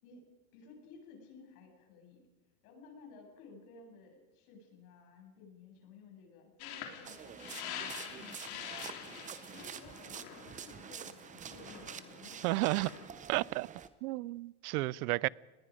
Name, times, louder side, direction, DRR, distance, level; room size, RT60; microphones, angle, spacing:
voice 1, 0.0-2.3 2.6-8.6 9.5-12.6 15.1-15.3, left 4 dB, 80° left, 7.6 m, -56 dB
sound 1, 6.6-13.1, left 9 dB, 60° left, 3.5 m, -46 dB
sound 2, 7.1-13.9, right 8 dB, 15° right, 0.7 m, -47 dB
voice 2, 12.4-12.9 13.3-13.7 14.0-15.3, right 22 dB, 80° right, 0.6 m, -32 dB
29.0 x 20.0 x 5.1 m
supercardioid pair, 155°, 44 cm